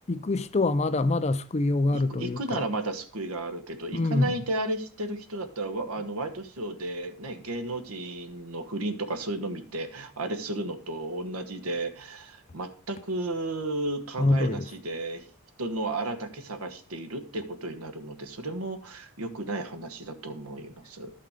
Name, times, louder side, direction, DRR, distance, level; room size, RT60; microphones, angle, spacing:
voice 1, 0.1-2.6 3.9-4.3 14.2-14.6, left 2 dB, 30° left, 0.5 m, -25 dB
voice 2, 1.9-15.3 15.6-21.1, right 2 dB, 85° right, 1.3 m, -33 dB
12.0 x 5.8 x 5.0 m
head